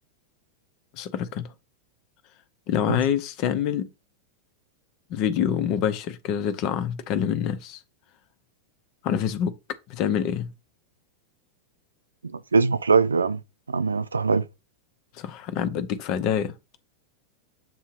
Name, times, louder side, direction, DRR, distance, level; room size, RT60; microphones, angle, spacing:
voice 1, 0.9-1.5 2.7-3.9 5.1-7.8 9.0-9.5 9.9-10.5 15.1-16.5, left 9 dB, 40° left, 0.8 m, -26 dB
voice 2, 12.2-13.4 13.7-14.4, right 4 dB, 75° right, 0.4 m, -22 dB
7.7 x 2.8 x 4.6 m
figure-of-eight pair, 90°, 0 cm